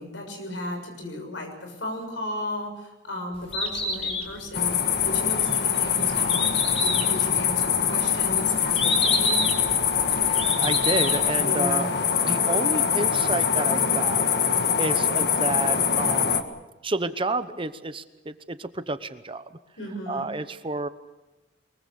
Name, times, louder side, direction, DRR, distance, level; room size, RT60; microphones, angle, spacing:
voice 1, 0.0-9.6 11.4-11.9 19.8-20.2, left 1 dB, 75° left, 3 dB, 6.8 m, -35 dB
Bird, 3.3-11.3, left 2 dB, 30° left, 3.6 m, -29 dB
sound 1, 4.5-16.4, left 7 dB, 60° left, 1.7 m, -23 dB
voice 2, 10.2-11.9 12.2-16.4 16.8-19.5 20.1-20.9, right 2 dB, 30° right, 12 dB, 0.9 m, -30 dB
23.5 x 22.0 x 7.1 m, 1.0 s
head